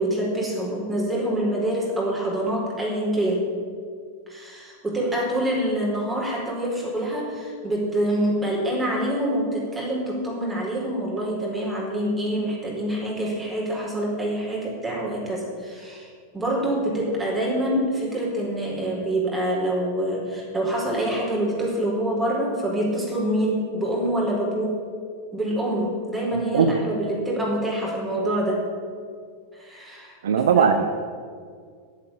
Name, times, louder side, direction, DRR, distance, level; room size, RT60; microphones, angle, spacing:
voice 1, 0.0-3.5 4.3-16.1 16.3-24.8 25.3-28.6 29.5-30.1 30.6-30.8, right 1 dB, 10° right, -4 dB, 4.4 m, -26 dB
voice 2, 26.3-26.7 30.2-30.8, right 6 dB, 60° right, 8 dB, 0.7 m, -19 dB
10.5 x 8.4 x 8.9 m, 2.1 s
figure-of-eight pair, 90°, 0 cm